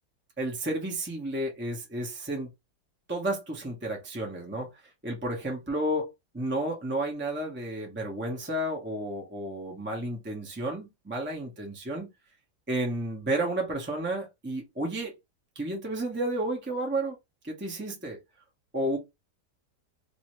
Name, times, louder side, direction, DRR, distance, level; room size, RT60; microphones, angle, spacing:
voice 1, 0.4-2.5 3.1-4.7 5.0-6.1 6.3-12.1 12.7-15.1 15.6-17.2 17.4-18.2 18.7-19.0, right 1 dB, 15° right, 0.4 m, -31 dB
2.8 x 2.7 x 3.0 m
omnidirectional pair, 1.9 m